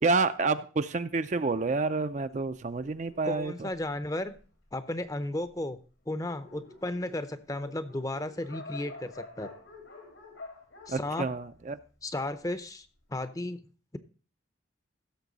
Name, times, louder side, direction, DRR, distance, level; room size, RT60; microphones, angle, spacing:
voice 1, 0.0-3.7 10.9-11.8, right 3 dB, 35° right, 11 dB, 0.4 m, -29 dB
Dog, 1.7-4.7 5.4-5.5 5.8-5.9 6.1-12.5, left 3 dB, 85° left, 3.4 m, -49 dB
voice 2, 3.2-4.3 4.7-5.8 6.1-9.5 10.9-11.3 12.0-13.6, left 1 dB, 15° left, 12 dB, 0.6 m, -34 dB
16.0 x 6.8 x 4.0 m, 0.37 s
head